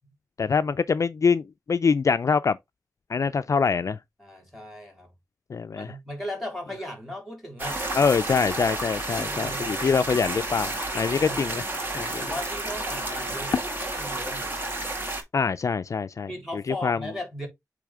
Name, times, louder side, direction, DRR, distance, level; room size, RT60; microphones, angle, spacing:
voice 1, 0.4-2.6 3.1-4.0 5.5-5.9 7.9-11.6 11.9-12.3 15.3-17.0, left 5 dB, 50° left, 0.3 m, -24 dB
voice 2, 4.2-5.1 5.8-7.8 9.2-9.9 11.2-11.5 12.1-14.6 16.3-17.5, equal, ahead, 3.8 m, -37 dB
sound 1, 7.6-15.2, right 2 dB, 30° right, 2.0 m, -31 dB
8.3 x 3.3 x 3.6 m
wide cardioid pair, 115°, 7 cm